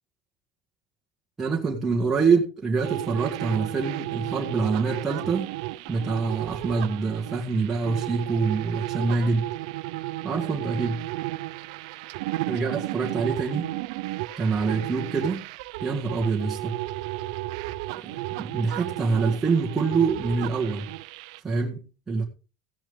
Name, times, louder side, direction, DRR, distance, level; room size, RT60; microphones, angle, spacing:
voice 1, 1.4-5.5 5.9-9.5 10.2-11.0 12.5-13.7 14.4-15.5 15.8-16.8 18.0-20.9 21.4-21.8 22.1-22.2, right 4 dB, 10° right, 1.7 m, -25 dB
sound 1, 2.8-21.4, right 18 dB, 70° right, 0.8 m, -33 dB
15.5 x 10.5 x 3.7 m
cardioid pair, 175°, 3 cm